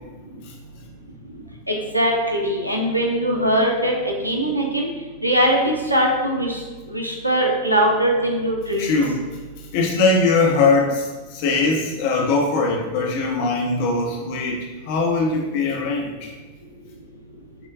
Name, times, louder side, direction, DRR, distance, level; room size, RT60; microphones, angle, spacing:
voice 1, 1.7-4.9 5.2-6.6 6.9-9.0, equal, 85° right, 0 dB, 0.5 m, -21 dB
voice 2, 8.8-9.4 9.7-14.6 14.9-16.3, left 3 dB, 50° left, -1 dB, 0.7 m, -21 dB
5.9 x 2.2 x 2.6 m, 1.3 s
figure-of-eight pair, 90°, 0 cm